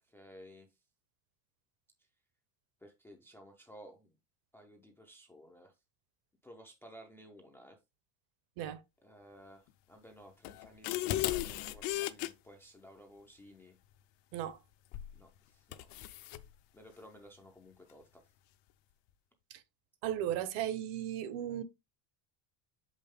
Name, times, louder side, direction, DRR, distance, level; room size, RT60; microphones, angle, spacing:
voice 1, 0.1-0.7 2.8-4.1 4.5-5.7 6.4-7.8 9.0-13.8 15.1-16.0 16.7-18.2, equal, 5° left, 0.4 m, -55 dB
sound 1, 10.4-12.3 14.9-15.2 15.7-16.4, left 14 dB, 50° left, 0.6 m, -35 dB
voice 2, 20.0-21.6, right 11 dB, 60° right, 1.0 m, -36 dB
7.0 x 5.4 x 3.5 m
cardioid pair, 170°, 46 cm